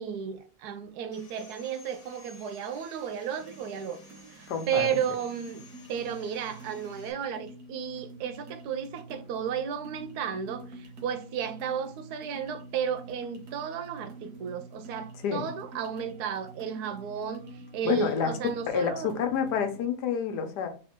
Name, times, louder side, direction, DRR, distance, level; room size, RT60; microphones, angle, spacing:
voice 1, 0.0-4.0 4.3-5.6 5.9-19.2, right 8 dB, 75° right, 1.1 m, -33 dB
Sawing, 1.1-7.1, left 3 dB, 50° left, 1.3 m, -54 dB
sound 1, 3.4-19.8, right 2 dB, 60° right, 1.2 m, -47 dB
voice 2, 4.5-4.9 15.2-15.5 17.8-18.3 18.7-20.7, left 7 dB, 85° left, 1.4 m, -28 dB
3.6 x 3.3 x 4.3 m
omnidirectional pair, 1.7 m